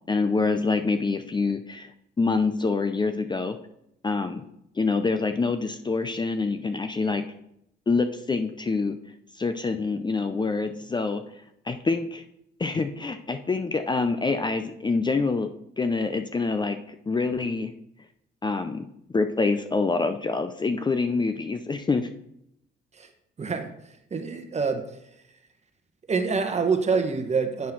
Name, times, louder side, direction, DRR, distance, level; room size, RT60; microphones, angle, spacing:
voice 1, 0.1-1.9 2.2-3.6 4.0-4.4 4.8-7.2 7.9-9.0 9.3-11.2 11.7-12.2 12.6-15.5 15.8-17.7 18.4-22.1, left 4 dB, 20° left, 8 dB, 0.5 m, -26 dB
voice 2, 23.4-24.8 26.1-27.7, right 5 dB, 35° right, 6 dB, 1.1 m, -26 dB
9.4 x 3.7 x 5.9 m, 0.76 s
cardioid pair, 90°, 20 cm